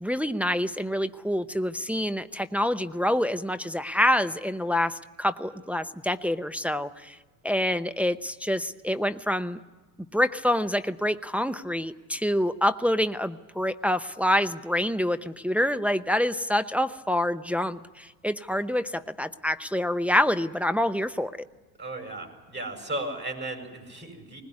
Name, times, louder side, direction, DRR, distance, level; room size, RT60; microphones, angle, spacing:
voice 1, 0.0-7.2 7.4-9.6 10.1-21.3, left 1 dB, 5° right, 9 dB, 0.8 m, -26 dB
voice 2, 21.8-24.4, right 1 dB, 25° right, 4 dB, 7.6 m, -35 dB
20.5 x 20.0 x 9.7 m, 1.3 s
hypercardioid pair, 85°, 46 cm